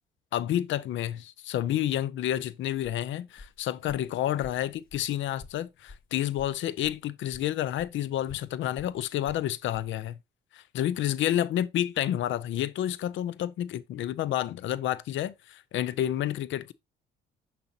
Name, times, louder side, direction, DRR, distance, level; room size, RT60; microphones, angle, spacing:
voice 1, 0.3-10.2 10.5-16.7, left 12 dB, 75° left, 0.6 m, -30 dB
Walk footsteps, 2.2-7.0 7.3-9.9, left 3 dB, 50° left, 1.5 m, -51 dB
6.8 x 5.9 x 2.7 m
cardioid pair, 90°, 20 cm